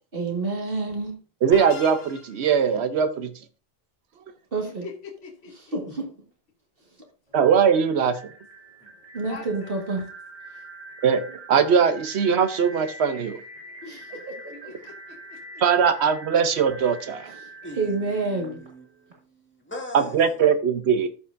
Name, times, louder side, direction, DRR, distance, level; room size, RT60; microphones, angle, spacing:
voice 1, 0.1-1.1 4.5-4.9 5.7-6.1 9.1-10.0 13.8-14.3 14.6-14.7 17.4-17.5 17.8-18.6, right 3 dB, 60° right, 2.1 m, -28 dB
voice 2, 1.4-3.3 7.3-8.2 11.0-11.2 11.5-13.4 15.6-17.3 19.9-21.1, right 7 dB, 85° right, 1.1 m, -20 dB
sound 1, 1.5-2.6, left 3 dB, 45° left, 1.4 m, -39 dB
voice 3, 4.6-5.8 9.2-9.7 14.5-15.6 17.6-17.7, left 5 dB, 80° left, 1.4 m, -43 dB
sound 2, 7.3-19.1, right 2 dB, 35° right, 2.6 m, -44 dB
voice 4, 17.6-20.6, equal, 10° left, 1.8 m, -41 dB
13.0 x 5.6 x 2.6 m
omnidirectional pair, 1.1 m